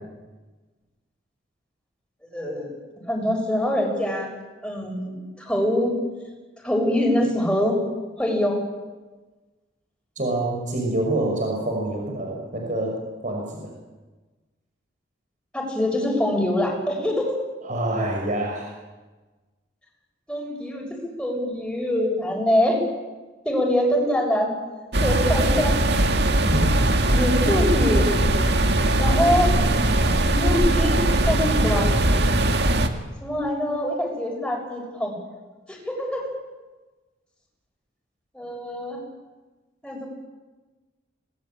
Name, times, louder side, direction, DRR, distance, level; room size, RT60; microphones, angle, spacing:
voice 1, 2.3-2.7 3.1-4.3 4.6-5.9 6.6-7.8 8.2-8.6 15.5-17.3 20.3-22.8 23.4-24.5 25.0-25.8 27.1-28.1 29.0-29.6 30.2-32.0 33.2-35.1 35.7-36.3 38.3-39.0 39.8-40.1, left 1 dB, 5° left, -1 dB, 7.1 m, -24 dB
voice 2, 10.2-13.7 17.6-18.7 26.4-26.7, right 1 dB, 40° right, 1 dB, 5.8 m, -26 dB
sound 1, 24.9-32.9, right 1 dB, 60° right, 2.1 m, -20 dB
27.0 x 20.5 x 8.9 m, 1.2 s
head